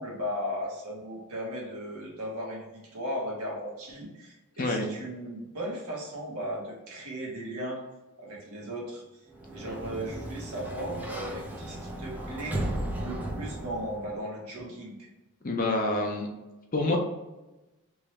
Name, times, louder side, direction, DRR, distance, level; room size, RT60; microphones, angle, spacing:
voice 1, 0.0-7.8 8.2-9.2 9.5-12.7 13.0-15.1, equal, 75° right, -3 dB, 1.3 m, -36 dB
Sliding door, 9.3-14.2, right 1 dB, 5° right, 0.5 m, -36 dB
voice 2, 15.4-16.3 16.7-17.0, left 2 dB, 40° left, 1 dB, 0.6 m, -27 dB
3.6 x 3.0 x 3.1 m, 1.1 s
head